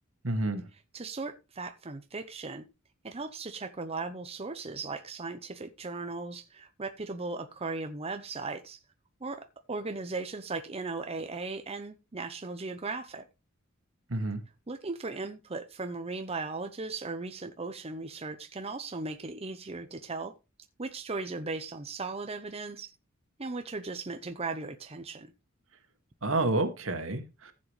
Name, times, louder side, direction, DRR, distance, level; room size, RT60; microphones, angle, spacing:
voice 1, 0.2-0.7 14.1-14.4 26.2-27.5, right 2 dB, 70° right, 2.1 m, -29 dB
voice 2, 0.9-2.6 3.0-8.8 9.2-9.4 9.7-13.2 14.7-20.3 20.8-22.9 23.4-25.3, right 3 dB, 30° right, 0.8 m, -37 dB
15.0 x 7.6 x 3.3 m
head